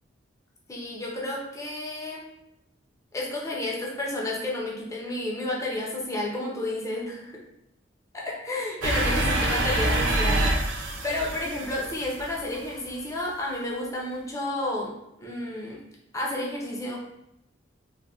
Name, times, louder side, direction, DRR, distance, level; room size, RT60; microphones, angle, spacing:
voice 1, 0.7-2.3 3.1-7.3 8.1-10.5 10.8-14.9 15.2-15.8 16.1-17.0, left 1 dB, 15° left, -3 dB, 0.5 m, -31 dB
sound 1, 8.8-12.7, right 1 dB, 75° right, 0.5 m, -26 dB
3.3 x 2.1 x 2.3 m, 0.83 s
head